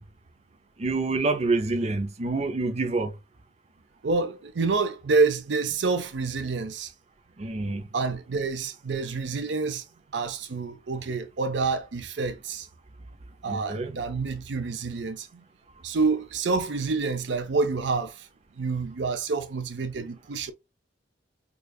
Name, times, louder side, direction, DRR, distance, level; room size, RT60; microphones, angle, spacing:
voice 1, 0.8-3.1 7.4-7.9 13.5-13.9, right 3 dB, 35° right, 0.5 m, -27 dB
voice 2, 4.0-6.9 7.9-9.8 10.1-12.7 13.4-15.4 15.8-18.3 18.5-20.5, right 4 dB, 90° right, 0.6 m, -28 dB
5.0 x 2.4 x 2.3 m
head